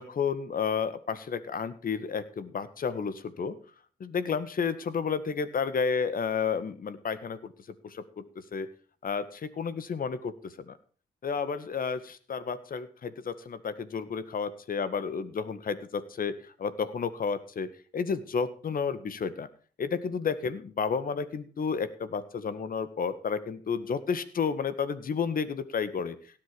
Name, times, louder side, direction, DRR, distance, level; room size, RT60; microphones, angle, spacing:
voice 1, 0.0-3.6 4.0-7.5 7.8-8.2 8.5-8.7 9.0-10.8 11.2-19.5 19.8-26.2, left 6 dB, 60° left, 13 dB, 1.8 m, -31 dB
17.5 x 7.8 x 5.2 m, 0.41 s
supercardioid pair, 55°, 17 cm